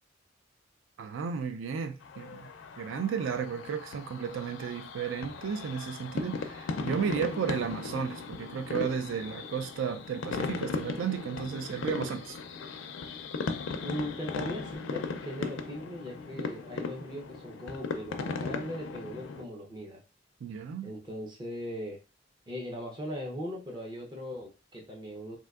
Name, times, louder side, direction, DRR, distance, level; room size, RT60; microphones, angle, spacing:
voice 1, 1.0-2.5 2.8-12.4 20.4-20.9, right 7 dB, 75° right, 0.3 m, -33 dB
sound 1, 2.0-19.4, left 4 dB, 75° left, 0.4 m, -37 dB
voice 2, 13.8-20.0 20.8-22.0 22.5-25.4, equal, 25° right, 0.5 m, -39 dB
3.5 x 2.6 x 2.3 m
head